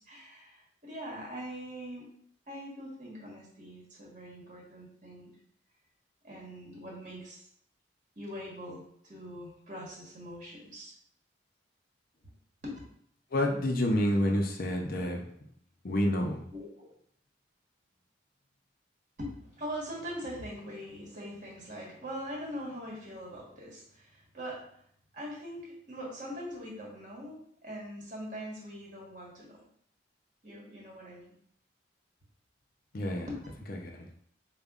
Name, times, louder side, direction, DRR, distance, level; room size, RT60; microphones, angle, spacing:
voice 1, 0.1-2.1 2.5-5.3 6.2-7.5 8.2-10.9 12.6-12.8 16.5-16.9 19.2-24.6 25.1-29.6 30.4-31.3 33.3-33.5, equal, 45° right, -4 dB, 1.3 m, -42 dB
voice 2, 13.3-15.2 15.8-16.4 32.9-33.4 33.6-33.9, left 1 dB, 50° left, 2 dB, 0.5 m, -28 dB
5.2 x 2.2 x 2.4 m, 0.66 s
head